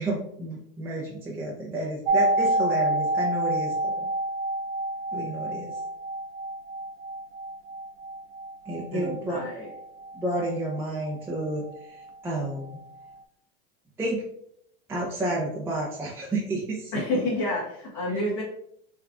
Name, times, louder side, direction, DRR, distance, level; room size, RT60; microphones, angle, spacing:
voice 1, 0.0-4.0 5.1-5.8 8.7-9.4 10.1-12.8 14.0-14.2 14.9-17.2 18.1-18.2, right 1 dB, 10° right, -4 dB, 0.5 m, -31 dB
sound 1, 2.1-11.8 12.1-12.2, right 2 dB, 75° right, 0.6 m, -29 dB
voice 2, 8.9-9.7 16.9-18.4, left 1 dB, 55° left, -6 dB, 1.3 m, -29 dB
3.4 x 2.4 x 3.4 m, 0.71 s
supercardioid pair, 135°, 29 cm